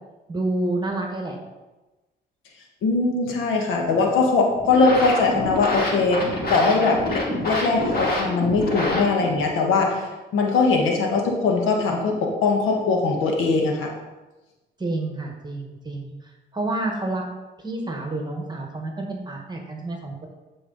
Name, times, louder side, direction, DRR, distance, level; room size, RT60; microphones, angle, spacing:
voice 1, 0.3-1.4 14.8-17.2 17.6-20.3, right 2 dB, 20° right, 2 dB, 1.4 m, -29 dB
voice 2, 2.8-6.2 6.5-10.0 10.3-13.9, left 4 dB, 90° left, 1 dB, 1.4 m, -21 dB
sound 1, 4.5-9.5, left 1 dB, 50° left, 2.3 m, -27 dB
11.5 x 4.6 x 4.0 m, 1.1 s
cardioid pair, 90°, 20 cm